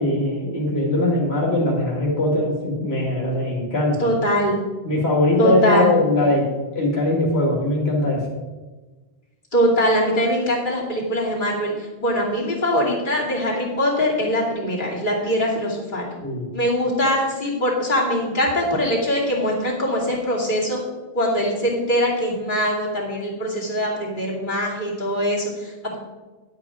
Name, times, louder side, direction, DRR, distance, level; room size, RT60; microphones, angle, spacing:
voice 1, 0.0-4.1 4.8-6.4 6.7-8.2 16.2-16.5, left 2 dB, 90° left, -2 dB, 2.3 m, -21 dB
voice 2, 4.0-4.6 5.4-5.9 9.5-11.7 12.0-16.1 16.5-20.8 21.1-26.0, equal, 50° left, -5 dB, 2.9 m, -22 dB
11.0 x 8.0 x 4.9 m, 1.2 s
omnidirectional pair, 1.0 m